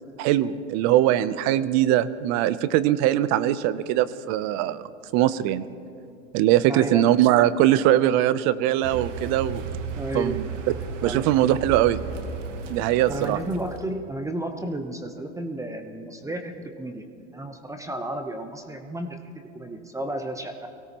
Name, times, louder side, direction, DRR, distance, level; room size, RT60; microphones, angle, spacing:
voice 1, 0.2-4.8 5.1-5.7 6.3-9.6 10.1-10.4 11.0-12.0 12.7-13.4, right 13 dB, 45° right, 16 dB, 0.7 m, -21 dB
voice 2, 6.7-7.1 9.9-10.4 10.6-11.2 13.1-17.0 17.3-19.2 19.5-20.7, right 1 dB, 10° right, 6 dB, 0.9 m, -32 dB
Car, 8.8-14.0, right 5 dB, 70° right, 1.6 m, -35 dB
23.5 x 17.0 x 3.0 m, 2.7 s
hypercardioid pair, 110°, 38 cm